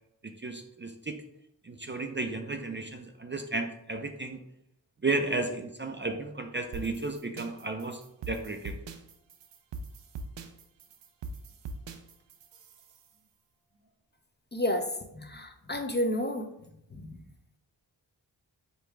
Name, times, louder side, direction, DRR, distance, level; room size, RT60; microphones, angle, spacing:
voice 1, 0.2-1.2 1.6-4.4 5.0-8.0 8.3-8.8, right 3 dB, 25° right, 5 dB, 0.5 m, -33 dB
sound 1, 6.7-13.1, right 3 dB, 75° right, 0.6 m, -43 dB
voice 2, 14.5-14.9 15.1-16.5 16.9-17.2, left 1 dB, 25° left, 5 dB, 0.6 m, -31 dB
5.1 x 2.3 x 4.5 m, 0.80 s
cardioid pair, 50°, 43 cm